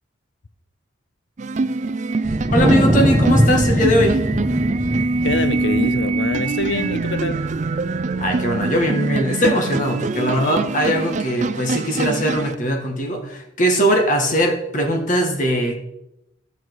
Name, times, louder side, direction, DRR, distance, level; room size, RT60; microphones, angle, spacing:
sound 1, 1.4-12.5, right 3 dB, 35° right, 0.3 m, -23 dB
Wind, 2.3-8.8, equal, 10° right, 1.1 m, -22 dB
voice 1, 2.5-4.2 8.2-15.8, equal, 40° left, 1.6 m, -20 dB
voice 2, 5.2-7.4, left 3 dB, 65° left, 0.6 m, -25 dB
14.0 x 6.0 x 4.7 m
head